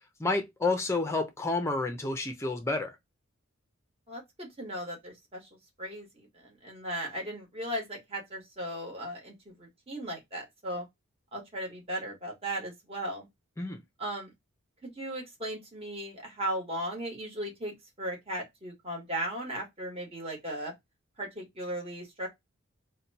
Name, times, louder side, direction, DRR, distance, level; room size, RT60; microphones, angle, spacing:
voice 1, 0.2-3.0 13.6-13.8, left 3 dB, 15° left, 0.5 m, -30 dB
voice 2, 4.1-5.5 5.8-10.8 11.3-13.3 14.0-14.3 14.8-20.7 21.2-22.3, right 1 dB, 30° right, 1.2 m, -37 dB
2.8 x 2.2 x 4.0 m
head